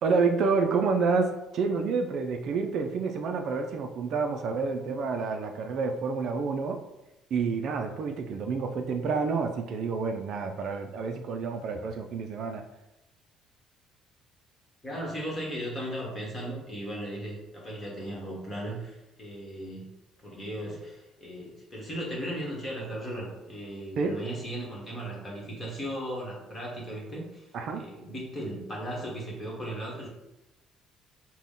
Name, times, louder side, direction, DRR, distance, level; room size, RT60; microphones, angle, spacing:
voice 1, 0.0-6.8 7.3-12.7 24.0-24.2 27.5-27.9, right 4 dB, 50° right, 5 dB, 0.4 m, -28 dB
voice 2, 14.8-19.9 20.2-30.1, right 1 dB, 15° left, -3 dB, 1.3 m, -37 dB
6.0 x 2.2 x 3.7 m, 0.95 s
cardioid pair, 155°, 0 cm